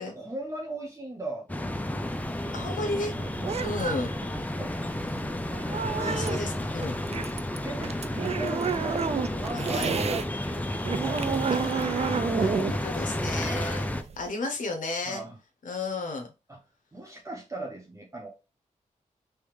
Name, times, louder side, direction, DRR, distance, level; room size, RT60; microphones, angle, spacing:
voice 1, 0.0-1.6 2.4-2.9 3.4-3.6 4.5-4.8 5.9-6.2 7.6-11.5 15.1-15.4 16.5-16.6 16.9-18.3, right 2 dB, 20° right, -1 dB, 0.9 m, -39 dB
sound 1, 1.5-14.0, left 1 dB, 10° left, 0.5 m, -32 dB
sound 2, 2.2-10.3 10.6-14.3, right 6 dB, 50° right, 0.4 m, -31 dB
voice 2, 2.5-3.1 3.6-4.1 6.0-7.0 9.5-9.9 11.5-13.9 14.2-15.2 15.6-16.3, left 2 dB, 80° left, 3 dB, 0.7 m, -33 dB
3.4 x 3.1 x 3.2 m, 0.29 s
cardioid pair, 65°, 13 cm